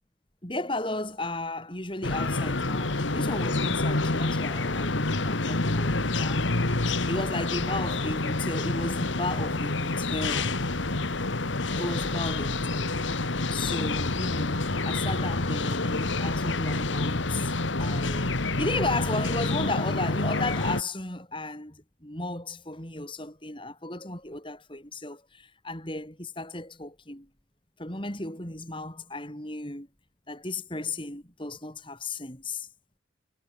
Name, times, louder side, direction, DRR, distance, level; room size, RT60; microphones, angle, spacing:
voice 1, 0.4-6.5 7.1-10.6 11.8-13.0 13.5-17.5 17.8-18.3 18.5-27.3 27.8-29.9 30.3-32.7, left 2 dB, 25° left, 5.1 m, -34 dB
sound 1, 2.0-20.8, left 2 dB, 80° left, 1.9 m, -28 dB
head